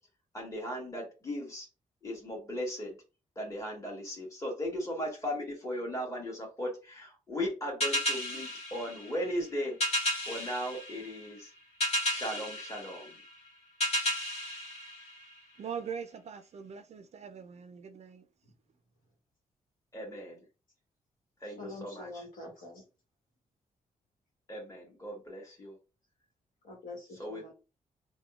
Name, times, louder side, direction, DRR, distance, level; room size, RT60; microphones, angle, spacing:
voice 1, 0.3-1.7 2.0-2.9 3.4-11.5 12.0-13.1 19.9-20.4 21.4-22.2 24.5-25.7 27.2-27.5, equal, 20° left, 1.5 m, -37 dB
sound 1, 7.8-15.7, equal, 45° left, 1.5 m, -34 dB
voice 2, 15.6-18.3, right 7 dB, 50° right, 0.4 m, -42 dB
voice 3, 21.5-22.8 26.6-27.5, left 2 dB, 75° left, 1.1 m, -45 dB
3.4 x 2.1 x 2.3 m
cardioid pair, 60°, 14 cm